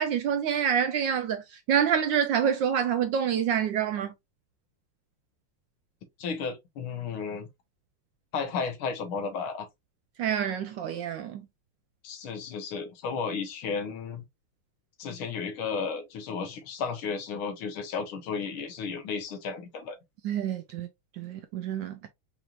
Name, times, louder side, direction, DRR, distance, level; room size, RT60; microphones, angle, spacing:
voice 1, 0.0-4.1 10.2-11.4 20.2-20.9 21.2-22.1, right 8 dB, 75° right, 1.1 m, -27 dB
voice 2, 6.2-7.5 8.3-9.7 12.0-14.2 15.0-20.0, left 5 dB, 75° left, 1.7 m, -33 dB
5.3 x 2.9 x 2.4 m
omnidirectional pair, 2.4 m